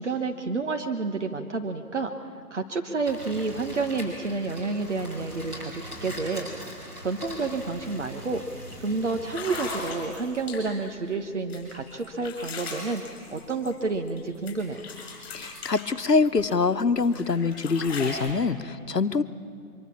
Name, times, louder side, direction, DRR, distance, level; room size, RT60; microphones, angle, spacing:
voice 1, 0.0-2.1 2.5-6.5 7.0-8.4 8.8-13.0 13.3-14.8, right 3 dB, 50° right, 5 dB, 1.3 m, -29 dB
sound 1, 3.1-9.8, equal, 15° right, 5.3 m, -41 dB
sound 2, 7.3-7.4 7.7-8.0 8.7-8.8 9.2-10.9 11.5-14.2 14.5-16.5 17.0-18.3, left 3 dB, 20° left, 5.7 m, -38 dB
voice 2, 15.3-19.2, left 4 dB, 85° left, 11 dB, 1.1 m, -24 dB
24.5 x 23.5 x 7.2 m, 2.5 s
figure-of-eight pair, 145°, 47 cm